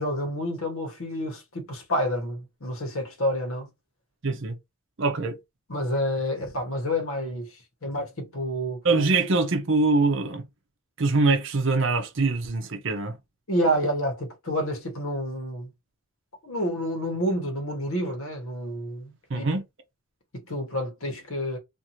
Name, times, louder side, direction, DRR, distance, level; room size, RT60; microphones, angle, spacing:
voice 1, 0.0-3.7 5.7-7.5 7.8-8.8 13.5-15.7 16.4-19.4 20.3-21.6, equal, 70° left, 1.1 m, -29 dB
voice 2, 4.2-4.5 5.0-5.4 8.8-10.4 11.0-13.2 19.3-19.6, right 3 dB, 55° right, 0.6 m, -23 dB
2.6 x 2.5 x 2.9 m
head